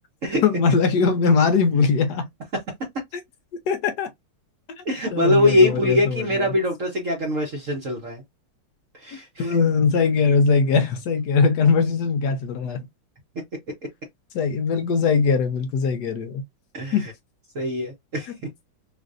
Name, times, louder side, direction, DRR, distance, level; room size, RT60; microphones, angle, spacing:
voice 1, 0.4-2.3 3.7-4.1 4.8-4.9 5.1-6.5 9.1-12.9 14.3-16.4 16.9-17.0, left 5 dB, 65° left, 1.1 m, -21 dB
voice 2, 4.8-8.2 8.9-9.6 16.7-17.0 17.5-18.3, left 1 dB, 50° right, 1.1 m, -22 dB
3.8 x 2.5 x 2.5 m
omnidirectional pair, 2.2 m